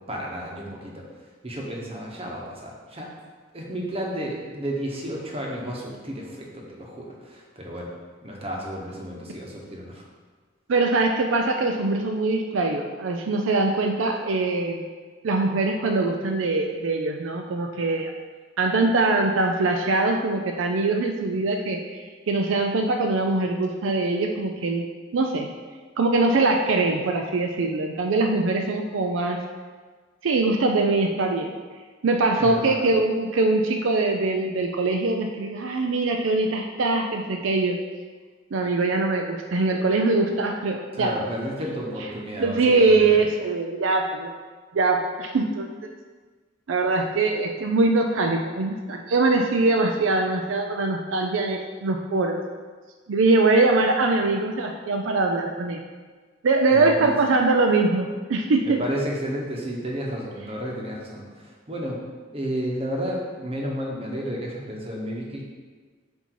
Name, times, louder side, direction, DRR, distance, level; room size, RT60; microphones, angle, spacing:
voice 1, 0.1-3.1 3.5-7.9 8.2-10.0 32.4-32.9 40.9-43.2 56.7-57.2 58.7-62.0 62.3-65.4, equal, 30° right, -2 dB, 1.0 m, -32 dB
voice 2, 10.7-14.8 15.2-18.1 18.6-25.5 26.0-29.4 30.2-31.5 32.0-37.8 38.5-41.1 42.4-44.3 44.7-45.7 46.7-52.4 53.1-55.8 56.4-58.8, right 3 dB, 75° right, 3 dB, 0.4 m, -22 dB
7.8 x 2.8 x 4.6 m, 1.4 s
head